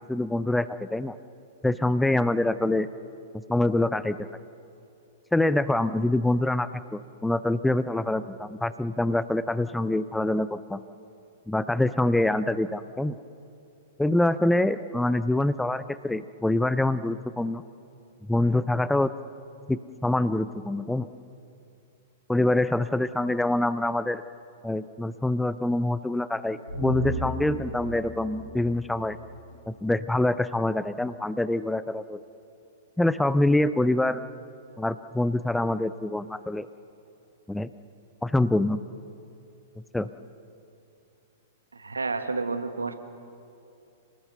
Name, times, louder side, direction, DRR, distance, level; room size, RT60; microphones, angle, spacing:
voice 1, 0.1-1.2 1.6-2.9 3.3-4.2 5.3-10.8 11.5-13.2 14.0-17.6 18.3-19.1 19.7-21.1 22.3-24.2 24.6-29.2 29.7-32.2 33.0-34.2 34.8-36.7 37.5-37.7 38.2-38.8 39.9-40.1, left 1 dB, 5° left, 14 dB, 0.5 m, -25 dB
sound 1, 26.7-30.1 30.4-30.5, right 1 dB, 80° left, 4.0 m, -36 dB
voice 2, 41.7-43.0, right 3 dB, 80° right, 9 dB, 1.4 m, -30 dB
27.0 x 18.5 x 6.8 m, 2.6 s
figure-of-eight pair, 105°, 0 cm